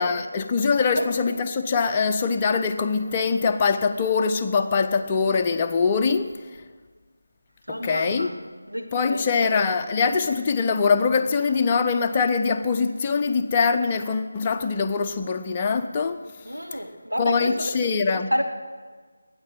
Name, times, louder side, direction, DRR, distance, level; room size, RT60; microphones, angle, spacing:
voice 1, 0.0-6.3 7.7-8.3 8.9-16.2 17.2-18.3, left 5 dB, 20° left, 0.7 m, -23 dB
voice 2, 7.7-8.4 8.7-9.5 16.5-17.7 18.3-18.4, equal, 85° right, 2.0 m, -29 dB
20.5 x 9.6 x 6.3 m
figure-of-eight pair, 160°, 0 cm